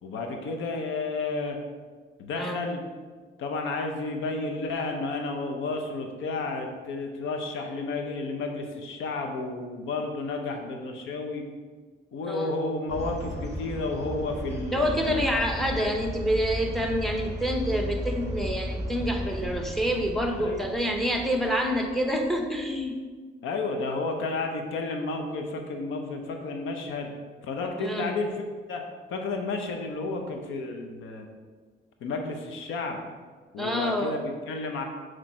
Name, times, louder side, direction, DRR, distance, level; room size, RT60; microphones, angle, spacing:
voice 1, 0.0-1.6 2.2-2.8 3.4-11.4 12.1-15.3 20.4-20.7 23.4-27.1 27.4-28.3 28.7-28.8 29.1-31.2 32.0-33.0 33.5-34.8, left 3 dB, 80° left, 4 dB, 0.8 m, -31 dB
voice 2, 2.4-2.7 12.3-12.5 14.7-23.0 27.8-28.1 33.6-34.2, equal, ahead, 3 dB, 0.8 m, -27 dB
sound 1, 12.9-22.7, equal, 15° right, 1.7 m, -35 dB
5.9 x 3.2 x 4.9 m, 1.5 s
cardioid pair, 90°, 20 cm